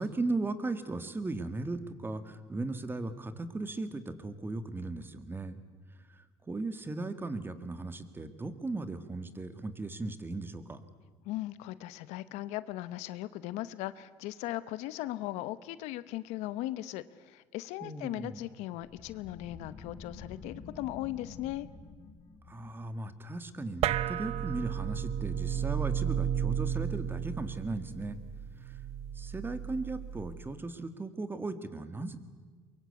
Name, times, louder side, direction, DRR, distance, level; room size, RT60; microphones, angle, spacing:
voice 1, 0.0-5.6 6.2-10.8 17.8-18.4 22.5-28.2 29.2-32.2, right 2 dB, 20° right, 11 dB, 1.9 m, -37 dB
voice 2, 11.3-21.7, left 15 dB, 85° left, 16 dB, 0.9 m, -38 dB
sound 1, 18.9-24.2, left 4 dB, 55° left, 4.3 m, -49 dB
sound 2, 23.8-30.6, right 9 dB, 65° right, 0.7 m, -33 dB
23.0 x 22.5 x 8.3 m, 1.5 s
cardioid pair, 105°, 11 cm